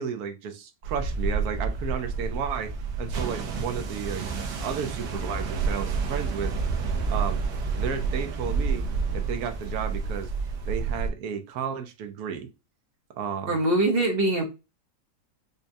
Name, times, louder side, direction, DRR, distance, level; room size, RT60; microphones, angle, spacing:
voice 1, 0.0-2.7 3.0-6.5 7.1-7.4 7.7-8.8 9.1-10.3 10.7-12.5 13.1-13.6, right 7 dB, 70° right, 7 dB, 1.1 m, -33 dB
sound 1, 0.8-11.1, right 4 dB, 90° right, 1.3 m, -29 dB
voice 2, 13.5-14.4, right 2 dB, 50° right, 2 dB, 0.8 m, -23 dB
5.2 x 2.3 x 2.6 m, 0.27 s
omnidirectional pair, 1.8 m